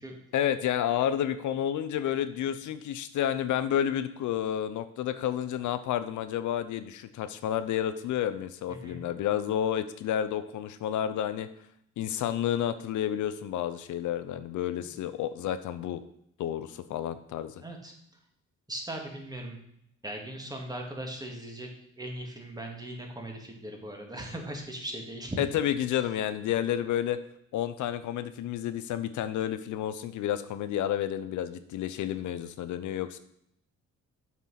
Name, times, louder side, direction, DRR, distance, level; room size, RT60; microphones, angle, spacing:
voice 1, 0.3-11.5 12.0-16.0 16.4-17.5 25.4-27.2 27.5-33.2, left 10 dB, 75° left, 11 dB, 0.7 m, -30 dB
voice 2, 8.7-9.0 17.6-17.9 18.7-19.6 20.0-21.7 22.0-25.4, right 1 dB, 15° right, 1 dB, 2.3 m, -39 dB
7.5 x 6.1 x 5.7 m, 0.72 s
cardioid pair, 90°, 30 cm